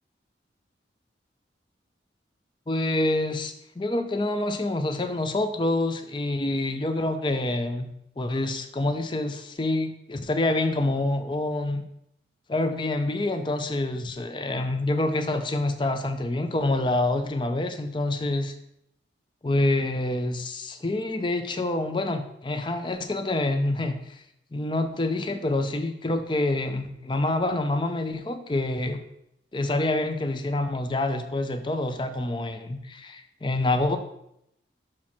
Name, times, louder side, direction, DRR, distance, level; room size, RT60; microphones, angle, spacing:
voice 1, 2.7-11.8 12.5-18.5 19.4-24.2 24.5-29.0 29.5-34.0, left 2 dB, 25° left, 8 dB, 0.5 m, -27 dB
6.1 x 4.6 x 5.8 m, 0.78 s
head